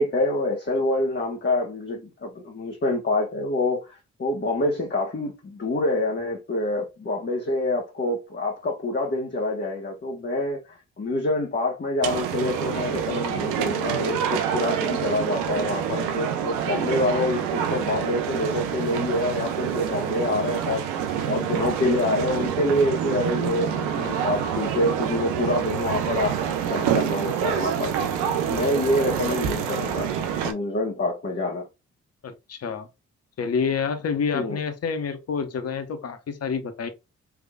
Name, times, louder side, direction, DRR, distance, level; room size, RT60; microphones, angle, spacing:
voice 1, 0.0-20.9 21.3-26.3 26.7-30.1 30.4-31.6 34.3-34.6, left 2 dB, 35° left, 1.3 m, -26 dB
sound 1, 12.0-30.5, right 8 dB, 90° right, 0.6 m, -27 dB
voice 2, 32.2-32.9 33.4-36.9, left 6 dB, 55° left, 0.9 m, -28 dB
3.6 x 3.3 x 2.3 m
hypercardioid pair, 45°, 30 cm